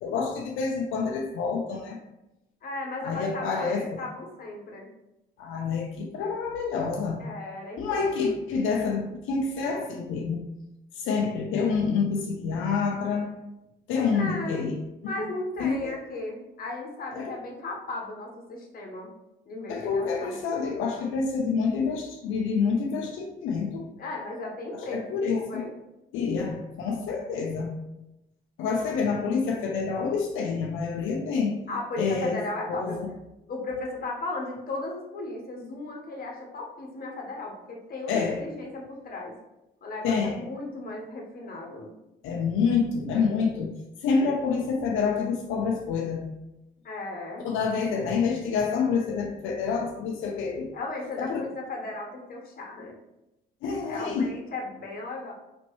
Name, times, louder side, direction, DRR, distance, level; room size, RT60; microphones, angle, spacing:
voice 1, 0.0-2.0 3.0-4.0 5.4-7.3 7.8-10.4 10.9-13.3 13.9-14.8 15.2-15.3 15.6-16.0 17.2-17.3 19.7-23.9 24.9-25.6 26.1-27.8 28.6-31.6 32.0-32.4 32.7-33.1 38.1-38.4 40.0-40.4 42.2-43.7 44.0-46.2 47.4-50.7 51.2-51.4 53.6-54.3, left 5 dB, 90° left, 1 dB, 0.5 m, -27 dB
voice 2, 2.6-4.9 7.2-8.3 14.1-14.6 15.0-19.1 19.5-20.4 24.0-25.7 31.7-33.0 33.5-39.3 39.8-41.9 46.8-47.4 50.7-52.9 53.8-55.3, left 2 dB, 50° left, 0 dB, 1.1 m, -36 dB
4.3 x 3.0 x 3.0 m, 0.90 s
cardioid pair, 90°, 20 cm